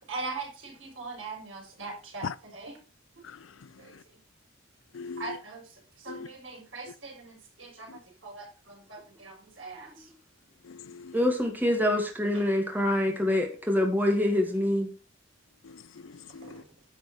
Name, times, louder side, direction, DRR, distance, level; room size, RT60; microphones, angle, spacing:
voice 1, 0.1-2.3 2.5-2.7 5.2-5.6 6.0-9.9 16.4-16.6, right 3 dB, 70° right, 4.8 m, -40 dB
voice 2, 3.2-4.0 4.9-5.4 6.1-6.3 6.9-7.0 7.9-8.0 10.6-11.2 15.6-16.6, left 5 dB, 75° left, 0.5 m, -41 dB
voice 3, 11.1-14.9, left 1 dB, 10° right, 2.0 m, -25 dB
10.0 x 5.4 x 6.1 m
head